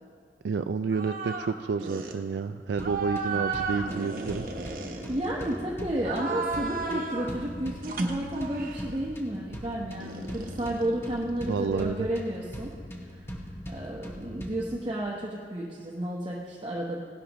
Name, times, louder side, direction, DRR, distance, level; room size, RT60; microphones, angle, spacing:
voice 1, 0.4-4.5 11.4-12.1, right 5 dB, 85° right, 9 dB, 0.3 m, -30 dB
sound 1, 0.9-1.5 1.8-2.2 2.8-5.5 6.0-7.3 7.8-8.9 10.0-11.8, right 3 dB, 50° right, 1.0 m, -34 dB
sound 2, 2.8-14.8, equal, 15° left, 1.2 m, -41 dB
voice 2, 4.9-12.7 13.1-17.0, right 1 dB, 30° right, -3 dB, 1.0 m, -32 dB
17.0 x 11.5 x 3.0 m, 2.3 s
head